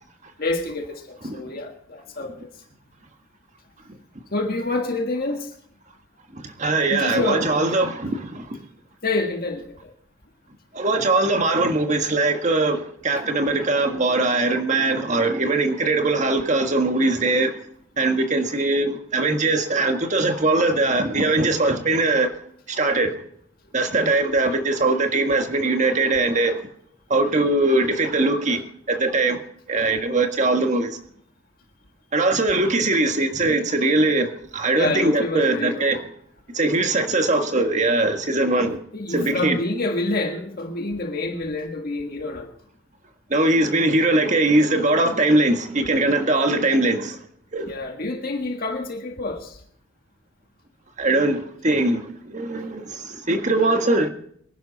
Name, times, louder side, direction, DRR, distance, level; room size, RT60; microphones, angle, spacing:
voice 1, 0.4-2.5 4.3-5.5 6.9-7.7 9.0-9.9 24.0-24.2 34.7-35.9 38.9-42.5 47.6-49.6, left 2 dB, 45° left, 1.7 m, -27 dB
voice 2, 6.3-8.6 10.7-17.6 18.0-22.3 22.7-23.2 23.7-26.7 27.1-29.4 29.7-31.0 32.1-36.1 36.5-38.8 39.1-39.6 43.3-47.2 47.5-47.7 51.0-54.1, right 2 dB, 35° right, 1.6 m, -21 dB
24.0 x 11.0 x 4.1 m
head